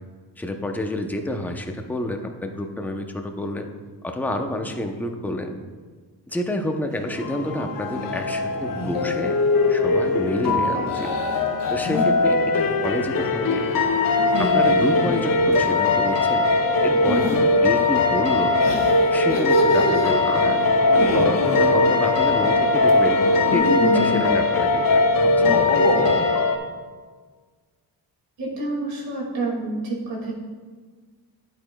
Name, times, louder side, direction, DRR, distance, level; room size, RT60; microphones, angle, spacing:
voice 1, 0.4-3.7 4.0-5.6 6.3-9.4 9.7-11.1 11.7-13.7 14.4-16.5 16.8-18.6 19.1-23.2 23.5-25.8, left 1 dB, 5° left, 4 dB, 0.7 m, -29 dB
sound 1, 6.9-23.6, right 1 dB, 35° right, 1.3 m, -35 dB
sound 2, 7.2-26.6, left 3 dB, 50° left, 0.8 m, -20 dB
sound 3, 7.9-8.3 8.6-9.1 10.9-12.1 14.2-15.6 17.0-17.4 18.6-20.1 20.9-21.7 23.2-24.3 25.2-26.3, left 2 dB, 70° left, 2.0 m, -27 dB
voice 2, 28.4-30.3, right 2 dB, 90° right, -3 dB, 2.3 m, -28 dB
8.7 x 8.4 x 2.3 m, 1.5 s
cardioid pair, 90°, 43 cm